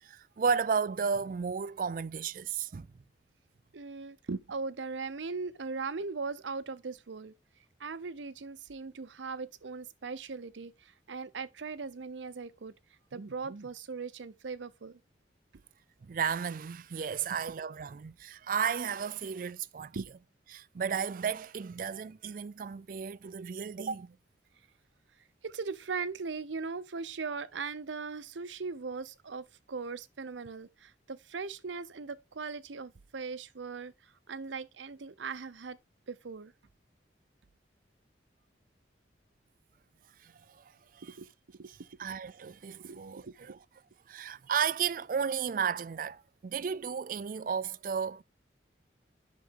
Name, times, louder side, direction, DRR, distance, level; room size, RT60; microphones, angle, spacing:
voice 1, 0.0-2.9 16.1-19.9 20.5-24.2 40.2-40.6 40.9-41.2 41.7-43.6 44.1-48.2, right 6 dB, 50° right, 0.4 m, -33 dB
voice 2, 3.7-7.3 7.8-12.7 13.1-15.0 19.9-20.1 25.4-35.8 36.1-36.5 41.0-41.3 41.6-41.7 42.8-43.6, right 4 dB, 90° right, 0.7 m, -39 dB
8.3 x 6.2 x 3.7 m
head